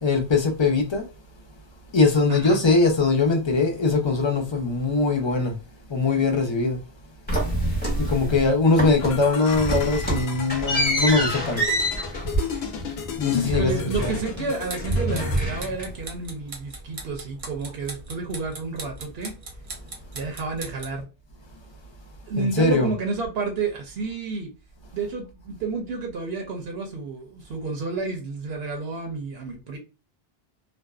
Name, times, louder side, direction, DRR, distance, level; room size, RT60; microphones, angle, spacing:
voice 1, 0.0-1.1 1.9-5.6 5.9-6.8 8.0-11.7 13.2-14.2 22.3-23.0, left 3 dB, 35° left, 0.5 m, -21 dB
sound 1, 7.3-8.5 8.8-9.3 9.5-14.5 14.8-16.1, right 1 dB, 10° left, 1.0 m, -26 dB
sound 2, 9.0-15.4, left 7 dB, 80° left, 0.8 m, -33 dB
voice 2, 13.4-19.3 20.1-21.1 22.3-24.5 24.9-29.8, right 4 dB, 75° right, 0.9 m, -30 dB
sound 3, 14.5-21.0, right 2 dB, 40° right, 0.5 m, -40 dB
2.6 x 2.1 x 2.3 m
omnidirectional pair, 1.0 m